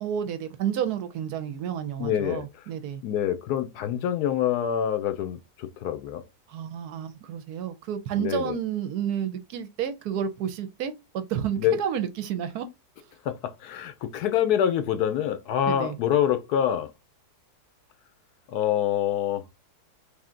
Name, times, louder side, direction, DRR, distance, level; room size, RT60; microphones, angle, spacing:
voice 1, 0.0-3.0 6.5-12.7 15.7-15.9, right 9 dB, 75° right, 1.0 m, -30 dB
voice 2, 2.0-2.6 3.0-6.2 8.2-8.6 11.6-11.7 13.2-16.9 18.5-19.4, left 10 dB, 70° left, 1.0 m, -26 dB
3.5 x 2.7 x 3.6 m
omnidirectional pair, 1.8 m